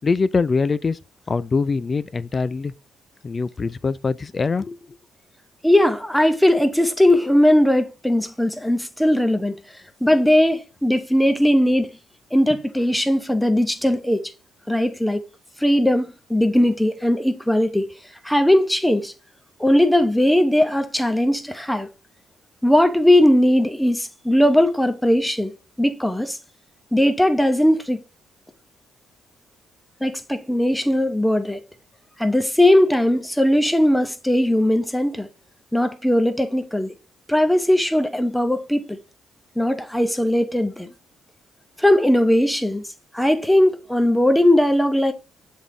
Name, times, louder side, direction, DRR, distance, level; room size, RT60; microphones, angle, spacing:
voice 1, 0.0-1.0 1.3-2.7 3.2-4.8, left 4 dB, 35° left, 0.4 m, -23 dB
voice 2, 5.6-9.6 10.0-11.9 12.3-14.3 14.7-15.2 15.6-17.9 18.2-19.1 19.6-21.9 22.6-25.5 25.8-26.4 26.9-28.0 30.0-31.6 32.2-35.3 35.7-36.9 37.3-39.0 39.6-40.9 41.8-42.8 43.1-45.1, left 1 dB, 5° left, 0.8 m, -19 dB
7.2 x 3.6 x 3.8 m
cardioid pair, 90°, 0 cm